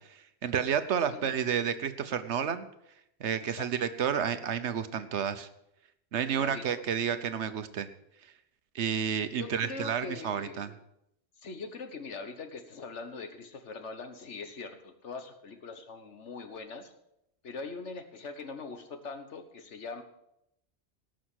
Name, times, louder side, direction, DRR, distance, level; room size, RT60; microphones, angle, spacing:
voice 1, 0.0-2.7 3.2-5.5 6.1-7.9 8.7-10.7, right 8 dB, 75° right, 11 dB, 1.1 m, -31 dB
voice 2, 6.3-6.8 9.3-10.7 11.4-16.9 17.4-20.0, left 4 dB, 85° left, 7 dB, 1.6 m, -42 dB
18.0 x 6.3 x 6.4 m, 0.81 s
omnidirectional pair, 1.2 m